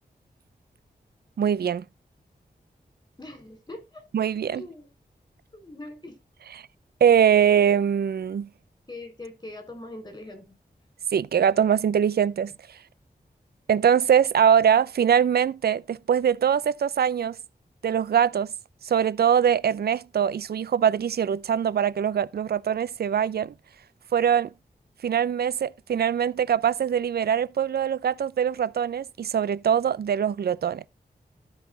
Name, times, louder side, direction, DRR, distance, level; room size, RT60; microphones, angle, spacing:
voice 1, 1.4-1.8 4.1-4.6 7.0-8.5 11.1-12.5 13.7-17.4 17.8-18.5 18.8-23.5 24.1-24.5 25.0-30.8, right 8 dB, 70° right, 0.5 m, -22 dB
voice 2, 3.2-4.0 4.5-4.9 5.5-6.2 8.9-10.6, left 2 dB, 25° left, 5.8 m, -41 dB
12.5 x 5.7 x 4.0 m
cardioid pair, 55°, 17 cm